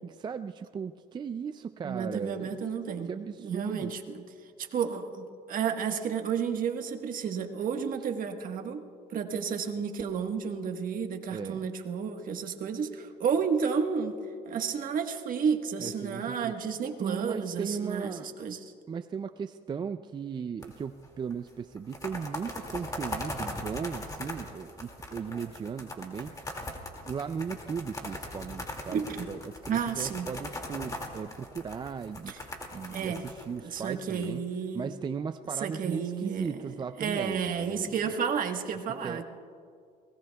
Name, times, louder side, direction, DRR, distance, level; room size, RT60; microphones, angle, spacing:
voice 1, 0.0-2.5 3.1-3.9 11.3-11.7 15.8-16.6 17.0-18.3 18.9-26.5 27.0-32.3 32.7-34.4 34.7-38.1 39.0-39.2, right 6 dB, 25° right, 9 dB, 0.4 m, -37 dB
voice 2, 1.8-3.1 3.4-4.2 4.6-8.8 9.1-14.2 14.4-18.7 28.9-29.2 29.7-30.3 32.3-32.4 32.9-33.2 33.6-34.9 35.6-36.6 37.0-39.2, right 6 dB, 55° right, 5 dB, 1.4 m, -31 dB
sound 1, 20.6-21.1 21.3-21.4 21.8-34.2, left 1 dB, 20° left, 2.3 m, -40 dB
29.5 x 19.5 x 2.3 m, 2.3 s
cardioid pair, 110°, 17 cm